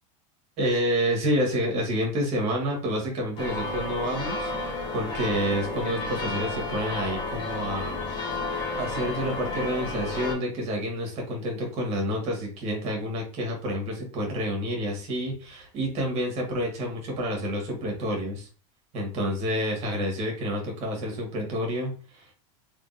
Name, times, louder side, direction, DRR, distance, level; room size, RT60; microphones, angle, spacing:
voice 1, 0.6-4.5 4.9-8.1 8.5-18.5 18.9-22.3, equal, 40° right, 0 dB, 1.7 m, -29 dB
sound 1, 3.4-10.3, left 3 dB, 30° left, 1.1 m, -32 dB
3.7 x 3.5 x 2.6 m, 0.37 s
supercardioid pair, 145°, 17 cm